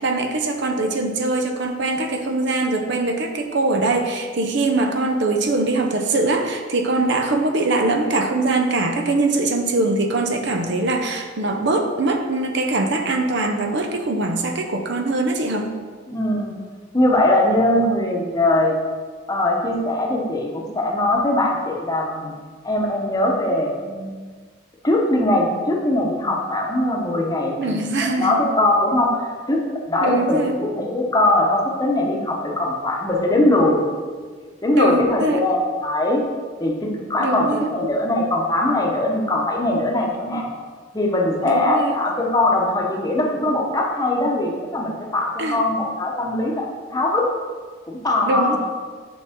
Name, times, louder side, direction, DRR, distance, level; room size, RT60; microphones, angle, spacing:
voice 1, 0.0-15.8 27.5-28.4 30.0-30.5 34.7-35.4 37.2-37.7 41.4-42.0 45.4-45.6 48.2-48.6, right 2 dB, 65° right, 5 dB, 0.6 m, -22 dB
voice 2, 16.1-16.5 16.9-18.8 19.3-22.3 22.6-24.2 24.8-27.8 28.1-29.2 29.5-33.8 34.6-36.2 36.6-40.5 40.9-46.6 46.9-47.3 47.9-48.6, left 1 dB, 20° left, -1 dB, 0.9 m, -21 dB
6.8 x 5.4 x 3.6 m, 1.5 s
head